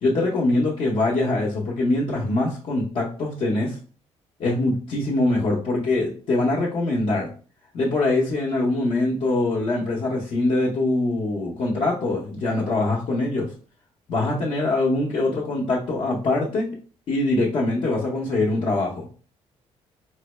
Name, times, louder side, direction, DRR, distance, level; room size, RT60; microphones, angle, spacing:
voice 1, 0.0-3.8 4.4-7.3 7.7-13.5 14.1-16.7 17.1-19.1, left 2 dB, 50° left, -5 dB, 0.7 m, -23 dB
3.9 x 2.1 x 3.0 m, 0.39 s
cardioid pair, 150°, 11 cm